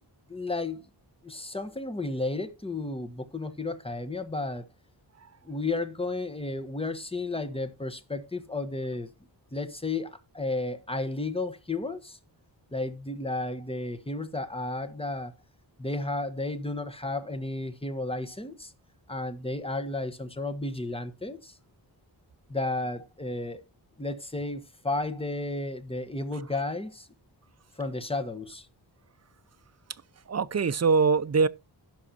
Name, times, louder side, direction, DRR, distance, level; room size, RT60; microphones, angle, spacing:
voice 1, 0.3-0.8 1.2-4.7 5.4-9.1 9.5-12.2 12.7-15.3 15.8-18.7 19.1-21.5 22.5-23.6 24.0-27.1 27.8-28.7, left 2 dB, 15° left, 1.1 m, -33 dB
voice 2, 30.3-31.5, right 5 dB, 40° right, 0.5 m, -23 dB
16.5 x 6.1 x 2.8 m
wide cardioid pair, 100°, 44 cm